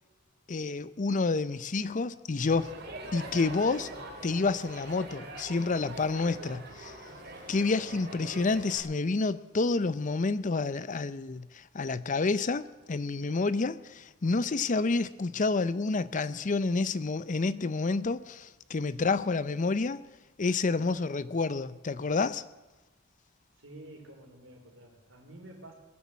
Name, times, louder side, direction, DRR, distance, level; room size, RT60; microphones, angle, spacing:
voice 1, 0.5-2.7 3.1-3.9 4.2-6.9 7.5-20.0 20.4-22.4, left 3 dB, 40° left, 0.5 m, -29 dB
Crowd, 2.5-8.8, right 1 dB, 55° right, 2.3 m, -43 dB
voice 2, 23.6-25.7, right 1 dB, 75° right, 3.8 m, -50 dB
21.0 x 7.2 x 7.4 m
head